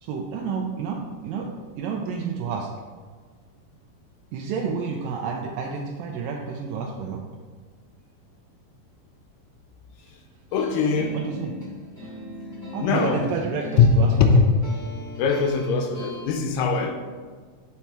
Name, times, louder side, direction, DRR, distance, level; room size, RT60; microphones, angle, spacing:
voice 1, 0.0-1.5 1.8-2.7 4.3-7.2 11.1-11.6 12.0-12.2 12.7-14.4, right 5 dB, 85° right, 2.3 m, -30 dB
voice 2, 10.5-11.2 12.8-13.3 13.8-14.5 15.2-16.9, left 5 dB, 80° left, 2.2 m, -20 dB
sound 1, 10.5-16.3, equal, 10° right, 1.0 m, -39 dB
7.1 x 4.5 x 4.4 m
omnidirectional pair, 4.2 m